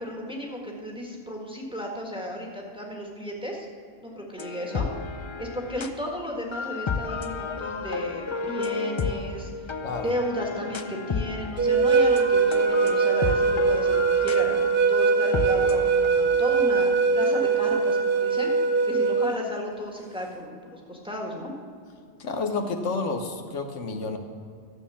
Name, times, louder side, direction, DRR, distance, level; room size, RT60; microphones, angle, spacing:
voice 1, 0.0-3.7 4.0-4.9 5.4-14.6 14.9-21.5, equal, 5° right, -1 dB, 1.6 m, -34 dB
sound 1, 4.4-6.0 6.5-11.7 12.0-16.1, left 5 dB, 45° left, 0.3 m, -32 dB
sound 2, 11.6-19.4, right 5 dB, 50° right, 1.0 m, -22 dB
voice 2, 22.2-24.2, left 3 dB, 85° left, 5 dB, 1.4 m, -30 dB
12.5 x 7.3 x 7.1 m, 2.3 s
omnidirectional pair, 1.2 m